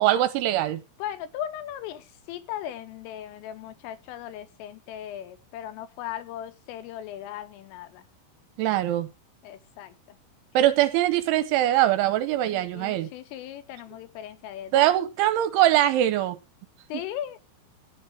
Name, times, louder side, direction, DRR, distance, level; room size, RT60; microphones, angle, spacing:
voice 1, 0.0-0.8 8.6-9.1 10.5-13.1 14.7-16.4, right 13 dB, 80° right, 3.0 m, -22 dB
voice 2, 1.0-8.1 9.4-10.2 12.5-14.9 16.9-17.4, left 11 dB, 85° left, 3.6 m, -38 dB
13.5 x 8.6 x 4.8 m
omnidirectional pair, 5.7 m